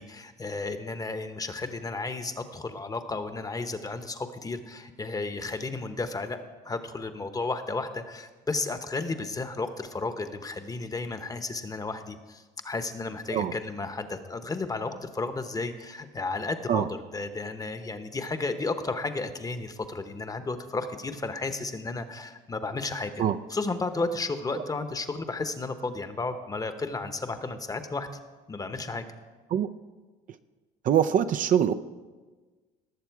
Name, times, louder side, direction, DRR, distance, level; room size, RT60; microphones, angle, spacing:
voice 1, 0.0-23.2 23.5-28.1 28.5-29.0, left 3 dB, 20° left, 9 dB, 1.0 m, -33 dB
voice 2, 30.8-31.7, right 9 dB, 50° right, 9 dB, 0.5 m, -23 dB
19.0 x 7.1 x 4.7 m, 1.3 s
cardioid pair, 100°, 18 cm